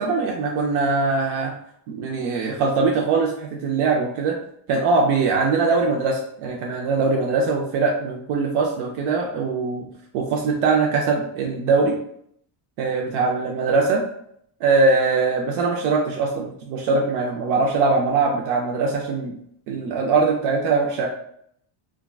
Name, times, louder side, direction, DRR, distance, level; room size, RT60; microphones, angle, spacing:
voice 1, 0.0-1.5 1.9-4.4 4.7-9.9 10.1-12.0 12.8-14.0 14.6-19.3 19.7-21.1, right 4 dB, 70° right, 0 dB, 0.6 m, -21 dB
3.6 x 2.3 x 2.2 m, 0.69 s
cardioid pair, 165°, 50 cm